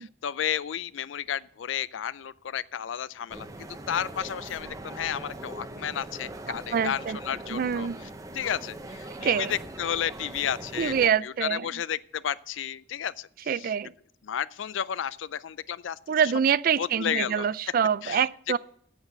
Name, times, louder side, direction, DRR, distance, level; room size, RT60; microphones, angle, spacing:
voice 1, 0.0-7.9 8.3-13.7 14.2-16.0 16.8-17.5 18.0-18.3, left 9 dB, 90° left, 0.4 m, -32 dB
sound 1, 3.3-11.1, right 1 dB, 20° right, 0.7 m, -41 dB
voice 2, 6.5-7.2 7.5-8.0 9.2-9.5 10.8-11.7 13.5-13.9 16.1-18.6, right 7 dB, 50° right, 0.3 m, -25 dB
8.1 x 7.8 x 7.9 m
head